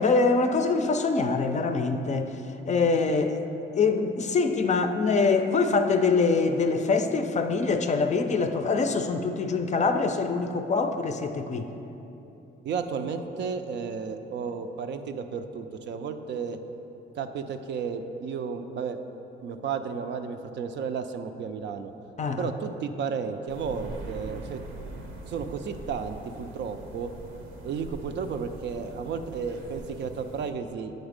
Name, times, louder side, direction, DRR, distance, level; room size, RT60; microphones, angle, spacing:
voice 1, 0.0-2.3 2.7-3.4 3.7-11.7 22.2-22.5, left 4 dB, 35° left, 7 dB, 0.4 m, -24 dB
voice 2, 12.6-16.6 17.1-19.0 19.4-21.9 22.4-24.6 25.3-27.1 27.6-30.9, right 6 dB, 65° right, 7 dB, 0.5 m, -33 dB
sound 1, 23.5-30.5, right 2 dB, 90° right, 0.9 m, -42 dB
8.0 x 4.0 x 5.1 m, 3.0 s
cardioid pair, 90°, 20 cm